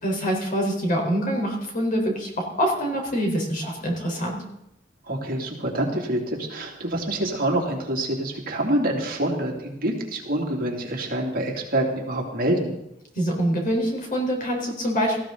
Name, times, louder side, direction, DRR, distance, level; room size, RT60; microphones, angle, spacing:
voice 1, 0.0-4.4 13.1-15.2, equal, 45° left, 1 dB, 4.3 m, -25 dB
voice 2, 5.1-12.7, right 1 dB, 50° right, 0 dB, 2.8 m, -26 dB
18.0 x 15.0 x 4.0 m, 0.83 s
head